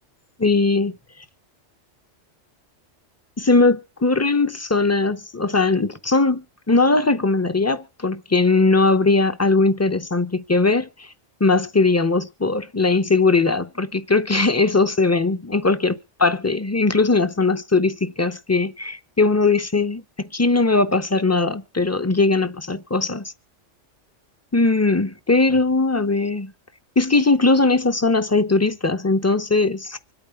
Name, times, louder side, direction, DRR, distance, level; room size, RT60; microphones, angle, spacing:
voice 1, 0.4-0.9 3.4-11.1 11.4-23.3 24.5-26.5 27.0-30.0, left 3 dB, 20° left, 0.5 m, -19 dB
25.5 x 8.9 x 3.5 m
omnidirectional pair, 1.2 m